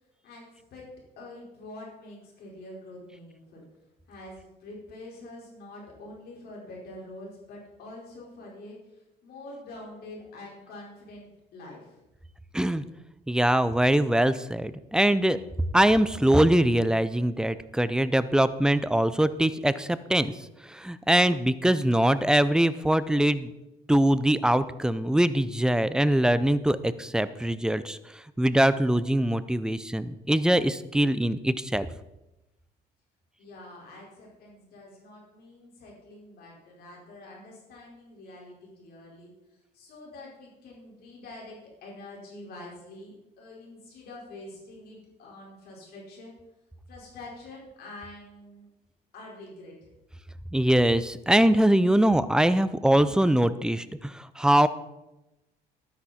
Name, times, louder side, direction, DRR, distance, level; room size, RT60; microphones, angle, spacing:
voice 1, 1.2-3.6 4.1-12.0 33.4-39.3 39.7-46.3 46.9-48.7 49.1-49.9, left 2 dB, 70° left, -2 dB, 4.8 m, -46 dB
voice 2, 13.3-15.4 15.7-20.3 20.6-23.5 23.9-31.9 50.5-54.7, right 1 dB, 5° right, 14 dB, 0.5 m, -23 dB
12.5 x 10.0 x 4.3 m, 0.96 s
cardioid pair, 110°, 17 cm